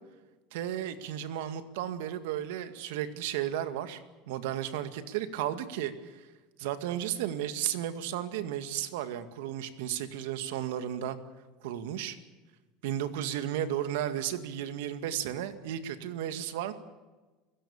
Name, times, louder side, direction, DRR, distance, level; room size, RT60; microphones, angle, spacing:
voice 1, 0.5-4.0 4.3-6.3 6.6-11.2 11.6-12.2 12.8-16.7, right 11 dB, 80° right, 10 dB, 2.0 m, -34 dB
29.5 x 16.5 x 7.2 m, 1.2 s
cardioid pair, 170°, 0 cm